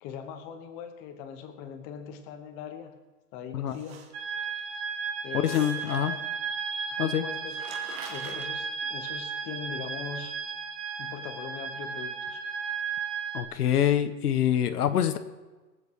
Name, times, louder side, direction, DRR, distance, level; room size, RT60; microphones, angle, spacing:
voice 1, 0.0-3.0 3.3-4.1 5.2-6.2 6.9-7.6 8.1-10.4 11.0-12.4, left 7 dB, 20° left, 6 dB, 1.0 m, -41 dB
sound 1, 3.7-4.6 5.4-6.3 7.0-7.1 7.3-8.5, right 5 dB, 50° right, 2.2 m, -44 dB
sound 2, 4.1-13.4, right 6 dB, 25° right, 1.3 m, -34 dB
voice 2, 5.3-6.1 7.0-7.2 13.3-15.2, left 10 dB, 65° left, 9 dB, 1.1 m, -25 dB
23.5 x 8.0 x 4.7 m, 1.2 s
hypercardioid pair, 165°, 49 cm